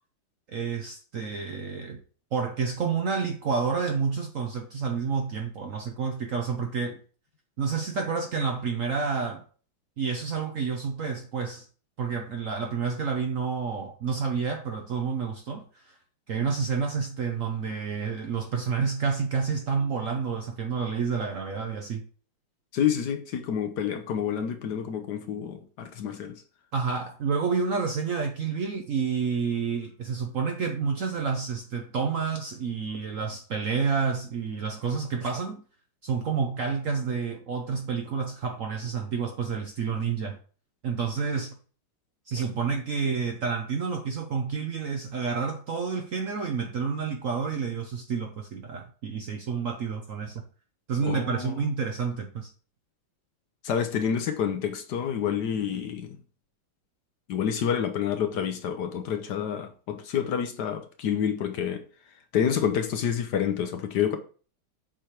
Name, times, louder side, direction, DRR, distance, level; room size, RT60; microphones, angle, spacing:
voice 1, 0.5-2.0 2.3-7.0 7.6-9.4 10.0-11.7 12.0-16.0 16.3-22.0 26.7-35.6 36.0-40.4 40.8-41.6 42.3-50.4 50.9-52.5, right 5 dB, 60° right, 0.8 m, -29 dB
voice 2, 22.7-26.4 51.0-51.6 53.6-56.2 57.3-61.8 62.3-64.2, left 8 dB, 65° left, 1.2 m, -28 dB
7.5 x 3.4 x 4.4 m
omnidirectional pair, 2.1 m